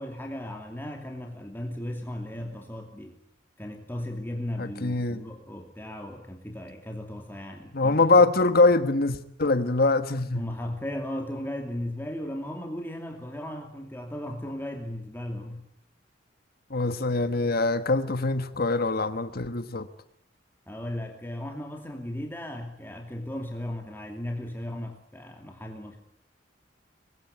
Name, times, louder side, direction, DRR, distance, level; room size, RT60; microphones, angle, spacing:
voice 1, 0.0-3.2 3.6-8.0 8.4-8.5 10.3-15.7 20.7-26.0, left 1 dB, 10° left, 2.6 m, -36 dB
voice 2, 4.6-5.2 7.7-10.4 16.7-19.9, left 3 dB, 55° left, 1.4 m, -23 dB
25.0 x 21.0 x 9.6 m
head